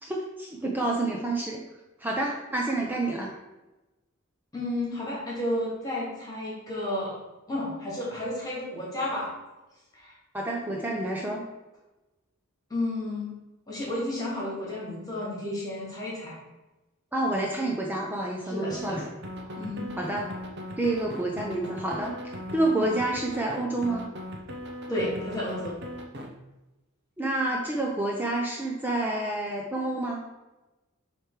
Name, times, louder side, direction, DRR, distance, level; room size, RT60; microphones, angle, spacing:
voice 1, 0.0-1.6 2.0-3.3 10.3-11.4 17.1-19.0 20.0-20.3 20.8-22.1 22.5-24.1 27.2-30.2, right 2 dB, 10° right, -2 dB, 0.6 m, -28 dB
voice 2, 4.5-7.2 7.5-9.3 9.9-10.1 12.7-13.3 13.7-16.3 18.4-19.0 19.6-19.9 24.9-25.7, left 1 dB, 15° left, -6 dB, 2.4 m, -32 dB
sound 1, 18.7-26.3, equal, 55° right, 0.9 m, -38 dB
7.7 x 3.3 x 4.9 m, 1.1 s
head